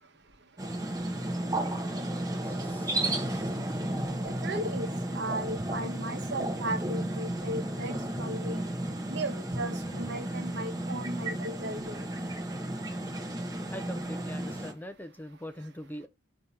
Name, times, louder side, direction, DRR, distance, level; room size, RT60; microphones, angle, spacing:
sound 1, 0.6-14.7, right 1 dB, 20° right, 1.0 m, -33 dB
voice 1, 2.4-3.5 13.7-16.1, equal, 10° left, 0.4 m, -43 dB
voice 2, 4.2-8.6 9.1-12.1, right 1 dB, 60° right, 1.1 m, -36 dB
6.5 x 2.8 x 5.2 m
head